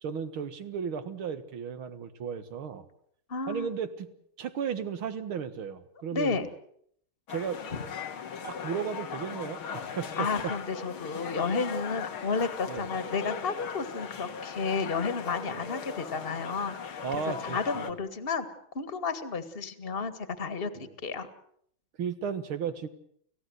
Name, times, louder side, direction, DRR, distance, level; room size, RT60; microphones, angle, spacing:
voice 1, 0.0-2.9 3.5-4.1 4.4-6.4 7.3-7.6 8.4-10.3 12.7-12.9 15.5-15.7 17.0-17.9 20.8-20.9 22.0-22.9, right 7 dB, 85° right, 11 dB, 2.4 m, -35 dB
voice 2, 3.3-3.7 6.1-6.5 7.7-7.8 10.2-17.0 17.4-18.5 18.8-21.3, left 4 dB, 30° left, 11 dB, 1.9 m, -32 dB
sound 1, 7.3-17.9, left 6 dB, 85° left, 2.5 m, -38 dB
30.0 x 16.0 x 8.0 m, 0.67 s
omnidirectional pair, 2.2 m